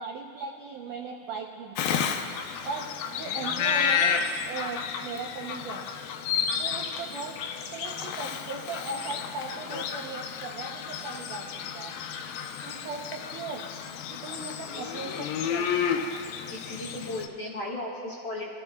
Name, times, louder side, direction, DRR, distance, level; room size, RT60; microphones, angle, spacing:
voice 1, 0.0-2.2 2.6-5.8 6.6-7.4 7.7-11.9 12.6-13.6 14.1-15.7, right 4 dB, 75° right, 0 dB, 1.9 m, -38 dB
Bird vocalization bird call bird song, 1.8-17.3, left 7 dB, 80° left, 2.2 m, -31 dB
voice 2, 16.5-18.5, left 1 dB, 50° left, -7 dB, 2.1 m, -36 dB
29.0 x 15.5 x 2.3 m, 2.3 s
omnidirectional pair, 4.8 m